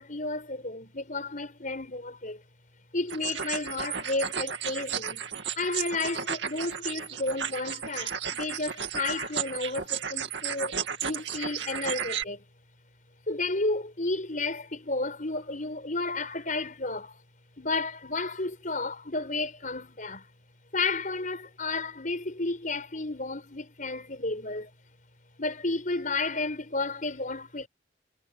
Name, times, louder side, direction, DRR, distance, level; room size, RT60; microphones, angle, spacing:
voice 1, 0.0-2.4 2.9-5.3 5.6-10.7 11.0-12.4 13.3-17.2 17.6-20.3 20.7-24.7 25.4-27.7, left 3 dB, 40° left, 5.5 m, -32 dB
sound 1, 3.1-12.2, right 7 dB, 65° right, 2.4 m, -34 dB
head